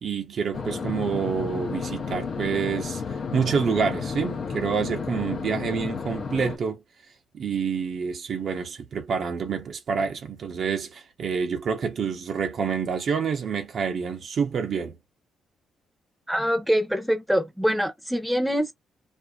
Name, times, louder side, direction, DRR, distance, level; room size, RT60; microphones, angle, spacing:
voice 1, 0.0-3.0 3.3-6.8 7.3-15.0, right 6 dB, 55° right, 0.7 m, -27 dB
sound 1, 0.5-6.6, left 5 dB, 55° left, 0.7 m, -32 dB
voice 2, 16.3-18.7, equal, ahead, 0.8 m, -24 dB
2.5 x 2.4 x 2.3 m
cardioid pair, 90°, 0 cm